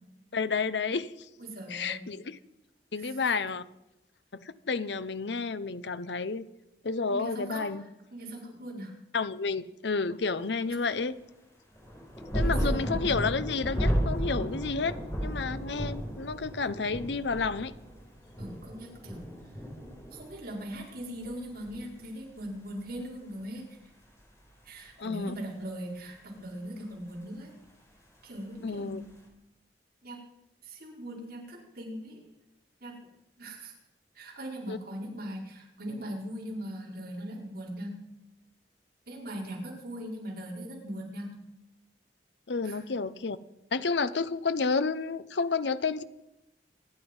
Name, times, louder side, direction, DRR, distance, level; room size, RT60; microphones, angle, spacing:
voice 1, 0.3-1.1 1.7-2.4 2.9-3.6 4.3-6.5 6.8-7.8 9.1-11.2 12.3-17.7 25.0-25.3 28.6-29.0 34.7-34.8 42.5-43.4 43.7-46.0, left 4 dB, 80° left, 14 dB, 0.8 m, -30 dB
voice 2, 1.4-2.0 3.0-3.2 7.1-7.7 8.1-8.9 12.4-13.0 18.4-19.3 20.1-23.8 24.6-27.5 28.2-29.0 30.0-30.2 30.6-32.2 32.8-33.0 33.4-33.7 34.1-38.0 39.1-41.3 42.6-42.8, equal, 60° right, -3 dB, 5.1 m, -40 dB
sound 1, 11.7-20.8 21.1-22.0 22.9-23.0, equal, 15° left, 5.0 m, -33 dB
26.5 x 9.9 x 5.5 m, 0.91 s
head